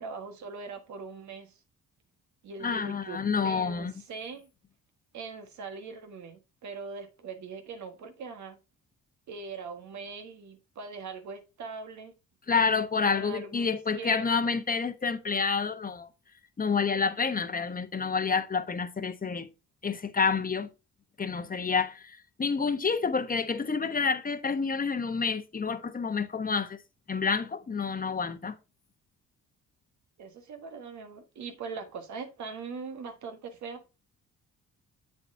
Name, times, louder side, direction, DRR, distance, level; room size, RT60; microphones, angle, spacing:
voice 1, 0.0-1.6 2.4-4.5 5.1-8.6 9.3-12.1 13.1-14.6 30.2-33.9, right 4 dB, 70° right, 1.6 m, -41 dB
voice 2, 2.6-3.9 12.5-16.1 16.6-19.5 19.8-20.7 21.2-26.8 27.1-28.5, left 5 dB, 30° left, 1.0 m, -28 dB
7.9 x 7.1 x 2.7 m
cardioid pair, 90°, 30 cm